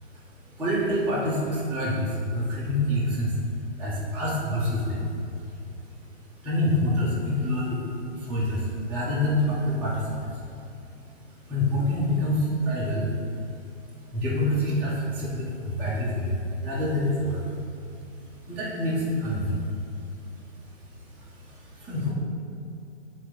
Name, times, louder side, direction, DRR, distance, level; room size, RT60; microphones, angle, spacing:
voice 1, 0.0-22.1, left 1 dB, 5° right, -12 dB, 1.6 m, -28 dB
9.5 x 4.1 x 5.1 m, 2.7 s
hypercardioid pair, 130°, 36 cm